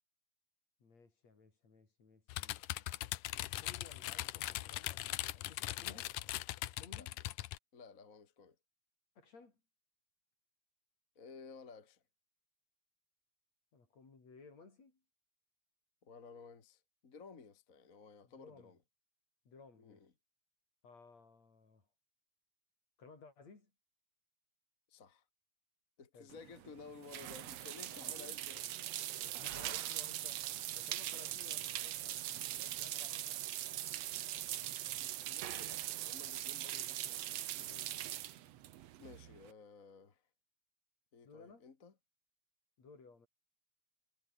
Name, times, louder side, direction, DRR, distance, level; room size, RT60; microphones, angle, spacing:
voice 1, 0.8-2.9 3.5-6.1 6.8-7.2 9.2-9.6 13.7-15.0 18.2-18.7 19.4-20.1 20.8-21.9 23.0-23.7 26.1-26.3 27.9-28.4 28.9-29.0 29.2-33.4 37.6-38.0 41.2-41.6 42.8-43.3, left 4 dB, 55° left, 6.3 m, -59 dB
sound 1, 2.3-7.6, left 16 dB, 85° left, 2.4 m, -40 dB
voice 2, 7.7-8.6 11.2-12.0 16.0-18.8 19.8-20.1 24.9-25.2 26.0-28.6 29.2-29.3 29.6-29.7 34.3-38.2 38.8-40.2 41.1-41.9, left 5 dB, 30° left, 1.9 m, -55 dB
sound 2, 26.3-39.5, right 13 dB, 65° right, 1.9 m, -41 dB
omnidirectional pair, 3.7 m